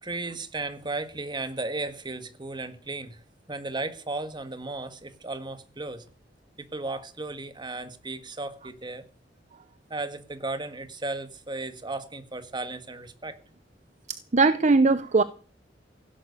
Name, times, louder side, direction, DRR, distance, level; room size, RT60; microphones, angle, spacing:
voice 1, 0.0-3.2 3.5-6.0 6.6-9.0 9.9-13.4, right 2 dB, 25° right, 1.8 m, -35 dB
voice 2, 14.1-15.2, right 3 dB, 40° right, 0.7 m, -20 dB
16.5 x 11.5 x 6.8 m
head